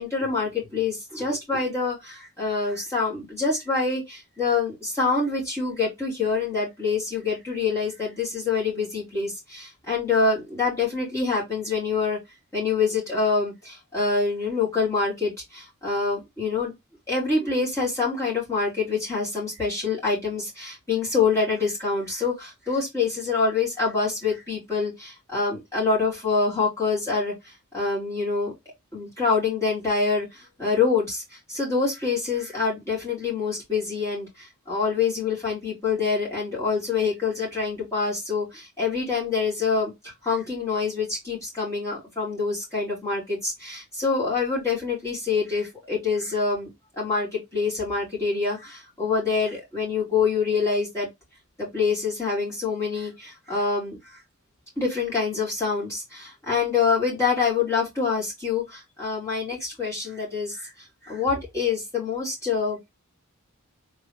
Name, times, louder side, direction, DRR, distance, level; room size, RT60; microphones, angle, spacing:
voice 1, 0.0-12.2 12.5-16.7 17.1-28.5 28.9-31.2 31.5-46.7 47.0-51.1 51.6-54.2 54.8-60.7 61.0-62.9, left 4 dB, 15° left, 2.8 m, -26 dB
4.1 x 3.7 x 3.0 m
head